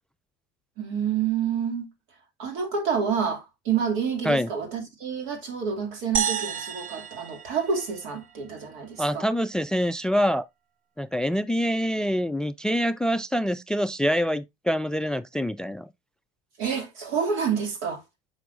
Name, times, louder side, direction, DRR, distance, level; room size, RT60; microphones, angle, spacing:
voice 1, 0.8-1.9 2.4-9.3 16.6-18.0, right 6 dB, 70° right, 2.6 m, -28 dB
sound 1, 6.1-8.6, right 7 dB, 40° right, 0.7 m, -31 dB
voice 2, 9.0-10.5 11.0-15.9, equal, 5° left, 0.3 m, -25 dB
7.0 x 5.9 x 2.5 m
supercardioid pair, 90°, 21 cm